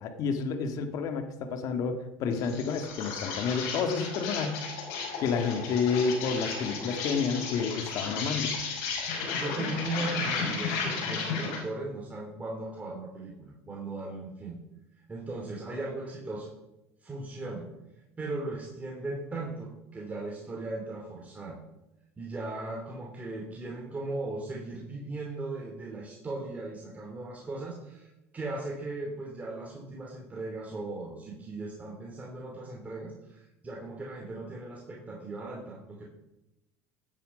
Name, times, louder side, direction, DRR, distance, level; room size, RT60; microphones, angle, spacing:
voice 1, 0.0-4.6 5.2-8.5, left 5 dB, 55° left, 6 dB, 2.0 m, -30 dB
Insect, 2.3-11.7, left 5 dB, 80° left, 5.6 m, -34 dB
voice 2, 9.3-14.6 15.1-16.5 17.0-17.7 18.2-21.6 22.2-36.0, right 2 dB, 20° right, -2 dB, 2.8 m, -38 dB
16.0 x 9.1 x 5.4 m, 0.99 s
supercardioid pair, 100°, 7 cm